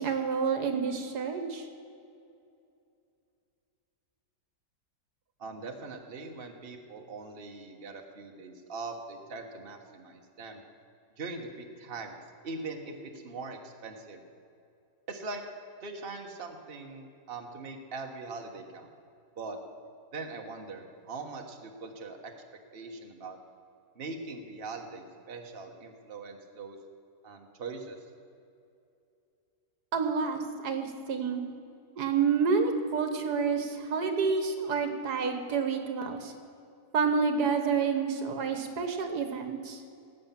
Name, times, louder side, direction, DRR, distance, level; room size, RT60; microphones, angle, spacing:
voice 1, 0.0-1.6 29.9-31.4 32.0-36.3 36.9-39.8, right 5 dB, 75° right, 7 dB, 1.7 m, -29 dB
voice 2, 5.4-10.6 11.2-12.2 12.4-14.2 15.1-15.4 15.8-18.9 19.4-19.6 20.1-22.3 22.7-23.4 23.9-26.8 27.2-28.0, right 3 dB, 35° right, 3 dB, 1.4 m, -41 dB
18.0 x 8.1 x 7.4 m, 2.6 s
omnidirectional pair, 1.7 m